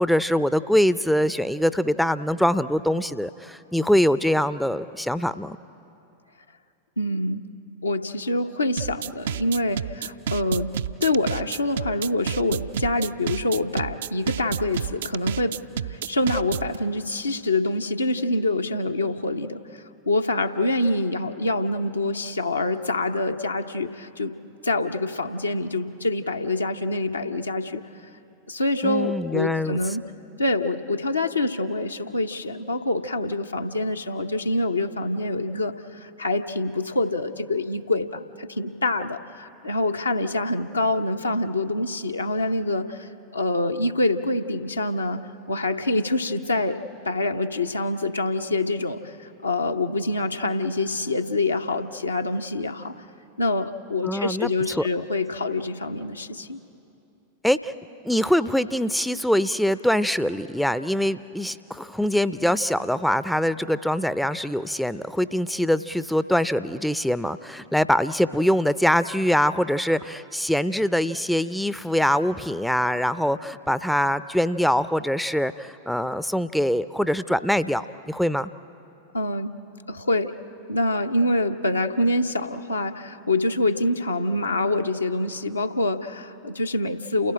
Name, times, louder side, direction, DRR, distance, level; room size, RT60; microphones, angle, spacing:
voice 1, 0.0-5.6 28.8-29.8 54.0-54.9 57.4-57.7 58.0-78.5, equal, ahead, 14 dB, 0.4 m, -23 dB
voice 2, 7.0-7.4 7.8-10.7 11.0-15.6 15.9-19.6 20.1-24.3 24.6-27.8 28.5-30.0 30.4-45.2 45.5-46.8 47.0-52.9 53.4-56.6 79.1-79.5 79.9-80.3 80.7-87.3, left 2 dB, 80° left, 5 dB, 0.8 m, -26 dB
sound 1, 8.8-16.8, right 8 dB, 60° right, 0.4 m, -30 dB
28.5 x 16.0 x 8.7 m, 2.8 s
figure-of-eight pair, 90°, 0 cm